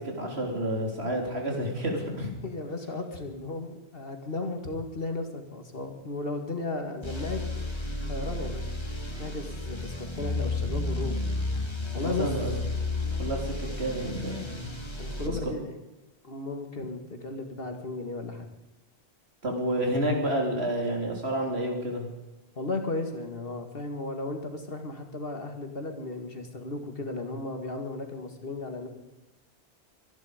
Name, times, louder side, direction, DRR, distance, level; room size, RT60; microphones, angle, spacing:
voice 1, 0.0-2.3 11.9-12.5 13.1-14.6 19.4-22.1, right 1 dB, 75° right, 1 dB, 3.9 m, -30 dB
voice 2, 2.4-7.4 8.1-8.7 9.2-11.2 11.9-12.3 15.0-15.7 16.2-18.5 22.6-28.9, left 2 dB, 60° left, 5 dB, 2.3 m, -35 dB
sound 1, 7.0-15.3, left 2 dB, 25° left, 2.1 m, -32 dB
25.0 x 10.5 x 5.1 m, 1.1 s
omnidirectional pair, 1.1 m